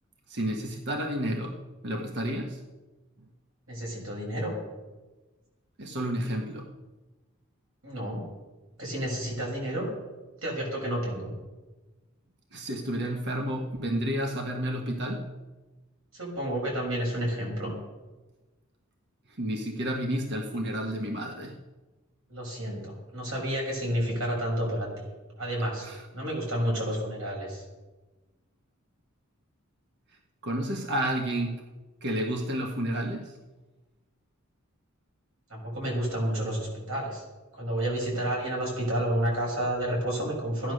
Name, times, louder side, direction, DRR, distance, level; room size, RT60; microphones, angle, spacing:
voice 1, 0.3-2.6 3.2-3.3 5.8-6.7 12.5-15.3 19.3-21.6 25.8-26.1 30.4-31.6 32.0-33.4, right 1 dB, 55° right, 3 dB, 1.3 m, -31 dB
voice 2, 3.7-4.5 7.8-8.2 8.8-9.9 10.4-11.3 16.1-17.7 22.3-25.1 25.4-25.9 26.1-27.6 35.5-37.2 37.6-40.7, equal, 75° right, -2 dB, 6.4 m, -30 dB
15.5 x 10.5 x 6.6 m, 1.2 s
head